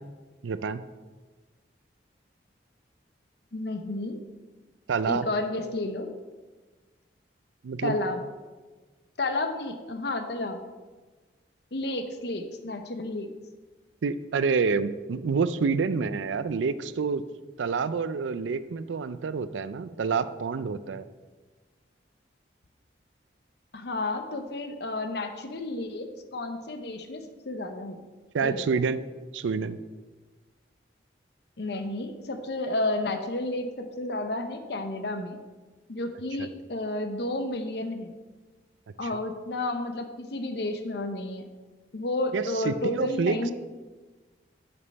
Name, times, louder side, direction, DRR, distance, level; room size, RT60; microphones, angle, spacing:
voice 1, 0.4-0.8 4.9-5.3 7.6-8.0 14.0-17.2 17.6-21.1 28.3-29.0 29.3-29.8 36.4-36.5 42.3-43.4, right 5 dB, 90° right, 14 dB, 0.4 m, -28 dB
voice 2, 3.5-4.2 5.1-6.1 7.8-8.2 9.2-10.6 11.7-13.3 23.7-28.0 28.4-28.7 31.6-35.4 35.9-38.1 39.0-41.5 41.9-43.5, left 2 dB, 60° left, 7 dB, 0.7 m, -31 dB
6.8 x 5.3 x 5.4 m, 1.3 s
head